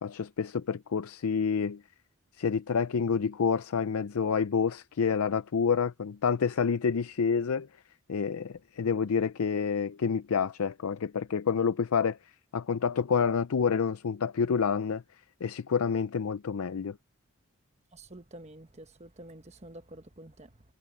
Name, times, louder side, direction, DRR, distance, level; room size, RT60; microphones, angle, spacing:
voice 1, 0.0-1.8 2.4-7.7 8.1-12.2 12.5-15.0 15.4-17.0, left 6 dB, 75° left, 0.5 m, -28 dB
voice 2, 17.9-20.6, right 1 dB, 30° right, 1.2 m, -49 dB
head